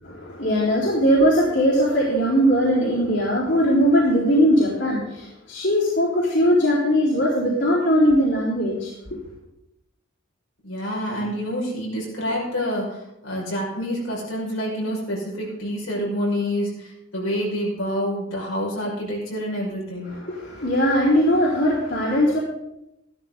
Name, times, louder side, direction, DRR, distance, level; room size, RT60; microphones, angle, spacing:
voice 1, 0.0-9.2 20.1-22.4, equal, 60° left, -7 dB, 3.9 m, -20 dB
voice 2, 10.6-20.1, equal, 90° left, -3 dB, 5.7 m, -27 dB
14.5 x 13.0 x 4.0 m, 0.86 s
head